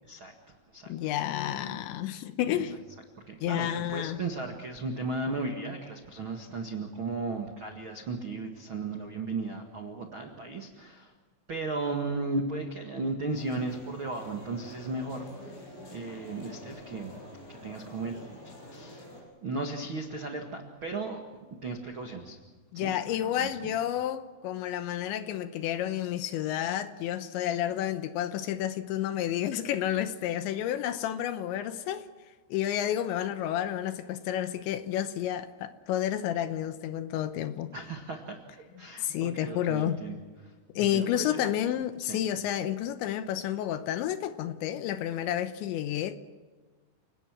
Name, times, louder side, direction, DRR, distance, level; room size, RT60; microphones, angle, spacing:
voice 1, 0.0-1.1 2.5-2.6 3.3-11.1 11.5-17.1 17.5-19.0 19.4-21.2 21.6-22.4 22.7-23.7 37.7-38.4 38.8-40.1 40.4-40.5 40.9-41.5 42.0-42.2, right 3 dB, 90° right, 1.1 m, -36 dB
voice 2, 0.9-2.8 3.4-4.2 22.7-32.1 32.5-37.7 39.0-40.0 40.8-46.2, left 11 dB, 75° left, 2.9 m, -30 dB
sound 1, 13.3-19.2, left 1 dB, 60° left, 9.1 m, -47 dB
30.0 x 19.0 x 6.1 m
omnidirectional pair, 5.7 m